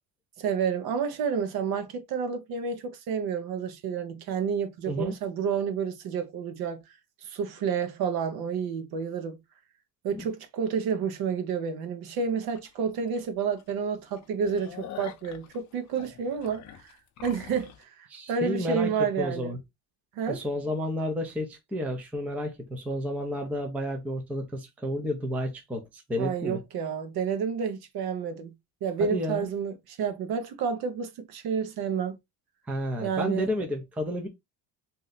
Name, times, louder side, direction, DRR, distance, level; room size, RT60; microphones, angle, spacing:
voice 1, 0.4-6.8 7.2-9.4 10.0-16.6 17.2-19.6 20.2-20.4 26.2-28.5 28.8-32.2 33.0-33.5, right 6 dB, 55° right, 0.9 m, -30 dB
sound 1, 12.6-12.7 13.1-13.2 13.6-13.7 14.1-17.8, left 10 dB, 40° left, 0.6 m, -45 dB
voice 2, 18.1-19.6 20.3-26.6 29.0-29.5 32.7-34.3, equal, 5° right, 0.4 m, -31 dB
3.1 x 2.7 x 3.9 m
cardioid pair, 165°, 44 cm